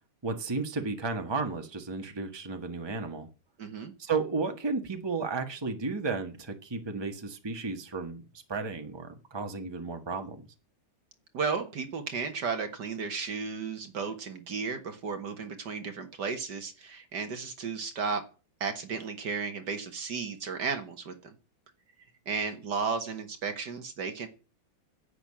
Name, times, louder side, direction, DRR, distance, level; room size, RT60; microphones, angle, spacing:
voice 1, 0.2-3.3 4.0-8.2 8.5-10.5, right 4 dB, 15° right, 6 dB, 1.5 m, -33 dB
voice 2, 3.6-3.9 11.3-18.2 18.6-21.3 22.3-24.3, right 5 dB, 60° right, 7 dB, 2.0 m, -34 dB
10.5 x 8.2 x 8.7 m, 0.35 s
omnidirectional pair, 2.2 m